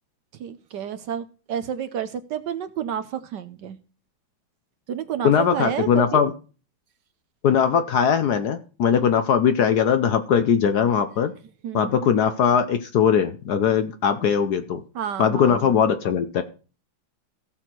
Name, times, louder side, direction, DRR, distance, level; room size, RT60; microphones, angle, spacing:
voice 1, 0.3-3.8 4.9-6.2 9.0-9.1 11.6-12.1 14.9-15.8, right 9 dB, 70° right, 11 dB, 1.2 m, -30 dB
voice 2, 5.2-6.3 7.4-11.3 11.7-14.8 15.2-16.4, left 7 dB, 65° left, 9 dB, 1.1 m, -20 dB
15.5 x 6.2 x 4.5 m, 0.37 s
omnidirectional pair, 2.2 m